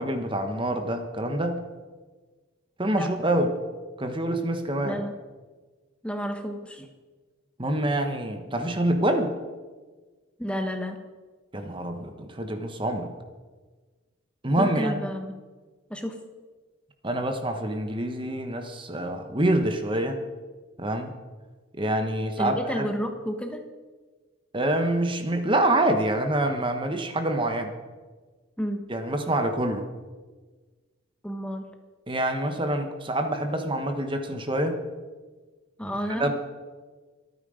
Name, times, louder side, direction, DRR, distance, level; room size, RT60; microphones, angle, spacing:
voice 1, 0.0-1.6 2.8-3.5 4.0-5.0 7.6-9.4 11.5-13.1 14.4-15.1 17.0-20.2 20.8-21.1 21.8-22.8 24.5-27.7 28.9-29.9 32.1-34.8 36.2-36.3, right 1 dB, 25° right, 6 dB, 1.2 m, -26 dB
voice 2, 4.8-5.1 6.0-6.9 10.4-11.0 14.6-15.4 15.9-16.2 22.4-23.6 28.6-28.8 31.2-31.6 35.8-36.3, equal, 5° left, 5 dB, 1.2 m, -30 dB
24.5 x 9.4 x 5.1 m, 1.4 s
head